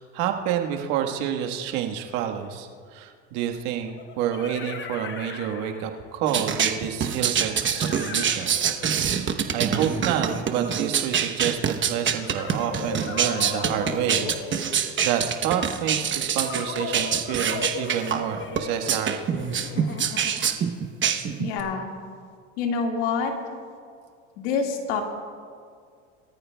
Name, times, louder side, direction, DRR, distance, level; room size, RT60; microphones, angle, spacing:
voice 1, 0.0-9.1 9.5-14.7 15.0-19.3, right 9 dB, 70° right, 4 dB, 1.5 m, -29 dB
sound 1, 2.4-2.5 3.9-6.2 7.5-11.0 12.2-15.2 16.4-20.7, left 5 dB, 35° left, 1.2 m, -37 dB
sound 2, 6.3-21.6, right 8 dB, 35° right, 1.0 m, -25 dB
voice 2, 21.4-21.9 22.6-23.3 24.4-25.0, left 5 dB, 75° left, 2 dB, 2.1 m, -26 dB
23.0 x 13.5 x 2.3 m, 2.1 s
supercardioid pair, 90°, 34 cm